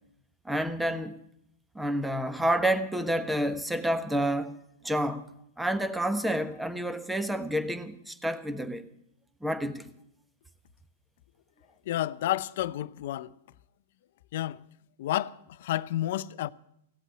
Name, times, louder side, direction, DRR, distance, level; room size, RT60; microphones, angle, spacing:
voice 1, 0.4-1.2 1.7-4.6 4.8-5.2 5.6-8.8 9.4-9.9, right 1 dB, 5° right, 1.3 m, -29 dB
voice 2, 11.9-13.3 14.3-14.6 15.0-16.5, left 13 dB, 60° left, 0.6 m, -30 dB
16.5 x 8.1 x 10.0 m
hypercardioid pair, 115°, 0 cm